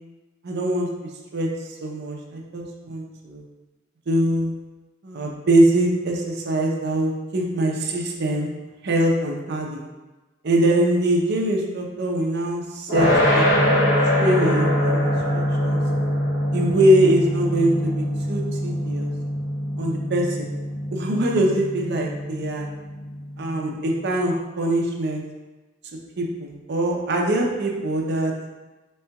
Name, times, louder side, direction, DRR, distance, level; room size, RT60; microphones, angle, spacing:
voice 1, 0.4-0.9 1.3-1.5 1.8-3.4 4.1-4.5 5.0-8.5 8.8-9.9 10.4-13.1 13.3-13.5 14.0-15.8 16.5-19.1 19.8-20.5 20.9-22.7 23.4-25.2 26.2-28.3, right 1 dB, 55° right, 0 dB, 0.6 m, -23 dB
sound 1, 12.9-23.9, equal, 60° left, 1.4 m, -23 dB
4.3 x 3.7 x 2.2 m, 1.2 s
head